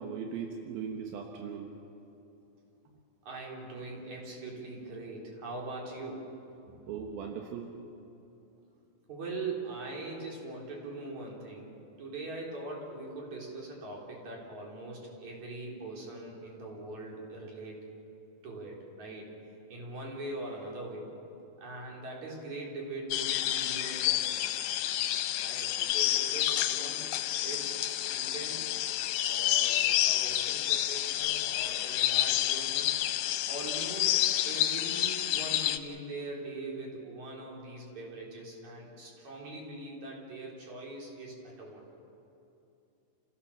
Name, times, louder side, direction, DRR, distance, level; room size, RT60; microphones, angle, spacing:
voice 1, 0.0-1.7 6.9-7.7, right 6 dB, 80° right, 2 dB, 3.1 m, -38 dB
voice 2, 3.2-6.3 6.7-6.8 8.6-8.7 9.1-17.9 18.4-19.3 19.7-21.1 21.6-24.4 25.4-27.1 27.4-28.7 29.2-33.0 33.5-41.8, right 2 dB, 50° right, -2 dB, 5.0 m, -42 dB
sound 1, 23.1-35.8, left 13 dB, 85° left, 2.6 m, -29 dB
29.0 x 16.5 x 7.1 m, 2.8 s
omnidirectional pair, 4.2 m